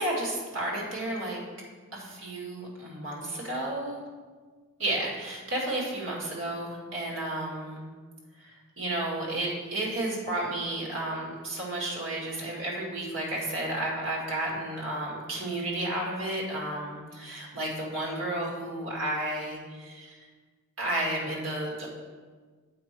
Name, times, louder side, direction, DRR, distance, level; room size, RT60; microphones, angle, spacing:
voice 1, 0.0-1.4 1.9-4.0 4.8-7.8 8.3-20.3 20.8-21.9, right 1 dB, 60° right, -3 dB, 2.2 m, -32 dB
7.7 x 5.5 x 4.5 m, 1.5 s
head